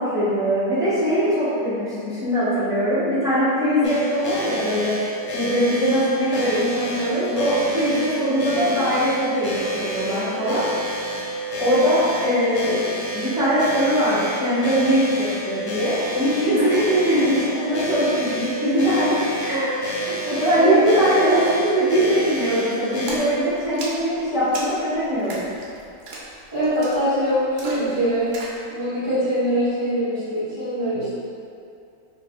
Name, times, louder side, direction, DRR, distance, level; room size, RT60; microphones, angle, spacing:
voice 1, 0.0-4.9 5.3-10.6 11.1-11.2 11.6-12.9 13.1-19.8 20.3-25.5, equal, 5° right, -13 dB, 0.7 m, -21 dB
sound 1, 3.8-23.2, equal, 65° left, 0.7 m, -29 dB
voice 2, 20.5-20.8 26.5-31.2, equal, 35° right, -13 dB, 1.6 m, -23 dB
Splash splatter, 23.1-28.6, right 2 dB, 85° right, 1.2 m, -37 dB
3.1 x 2.5 x 3.6 m, 2.6 s
omnidirectional pair, 1.7 m